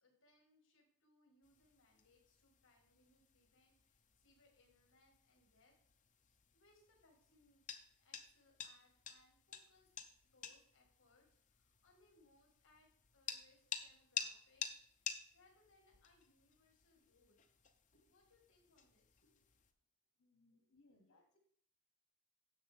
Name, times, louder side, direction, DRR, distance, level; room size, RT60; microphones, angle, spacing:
voice 1, 0.0-5.7 6.5-9.9 10.3-14.7 15.3-17.4 17.9-19.4 20.5-20.6 20.9-21.0, left 2 dB, 55° left, 1 dB, 1.9 m, -73 dB
sound 1, 1.4-19.7, left 7 dB, 35° left, 0.7 m, -52 dB
voice 2, 20.2-21.4, left 2 dB, 75° left, 2 dB, 1.2 m, -71 dB
10.0 x 7.5 x 3.5 m, 0.64 s
head